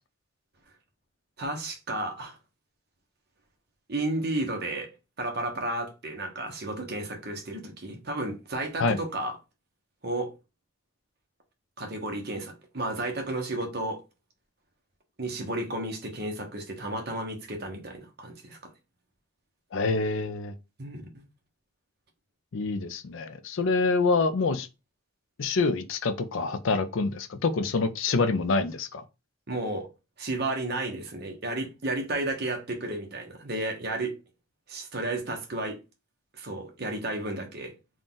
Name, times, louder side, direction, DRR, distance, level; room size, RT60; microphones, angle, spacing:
voice 1, 1.4-2.4 3.9-4.9 5.2-9.4 10.0-10.3 11.8-14.0 15.2-18.6 20.8-21.2 29.5-29.9 30.2-34.1 34.7-35.8 36.3-37.7, right 2 dB, 50° right, 1.1 m, -32 dB
voice 2, 19.7-20.5 22.5-24.7 25.4-29.0, left 3 dB, 75° left, 0.5 m, -26 dB
3.7 x 2.4 x 3.9 m
head